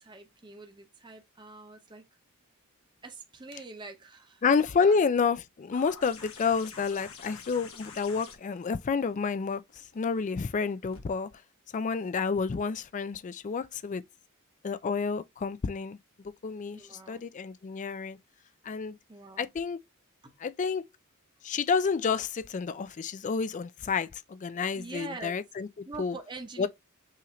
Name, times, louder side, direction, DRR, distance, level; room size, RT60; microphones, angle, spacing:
voice 1, 0.0-2.1 3.0-4.4 4.7-5.0 16.7-17.2 19.1-19.5 20.2-20.4 24.7-25.4 25.9-26.7, right 3 dB, 20° right, 0.7 m, -44 dB
voice 2, 4.4-11.3 11.7-14.0 14.6-16.8 17.1-18.2 18.6-19.0 19.4-19.8 20.4-20.9 21.4-25.7 26.0-26.2 26.6-26.7, left 5 dB, 35° left, 0.3 m, -29 dB
sound 1, 5.7-11.0 12.4-12.5, left 5 dB, 75° left, 1.3 m, -48 dB
5.6 x 2.5 x 3.1 m
head